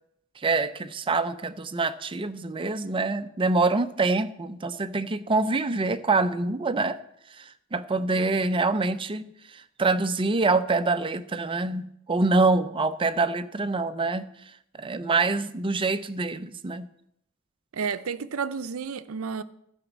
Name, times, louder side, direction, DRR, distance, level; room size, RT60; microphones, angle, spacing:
voice 1, 0.4-7.0 7.4-14.3 14.8-16.9, right 3 dB, 25° right, 0.5 m, -25 dB
voice 2, 17.7-19.4, right 5 dB, 70° right, 0.6 m, -31 dB
12.5 x 5.1 x 7.2 m
head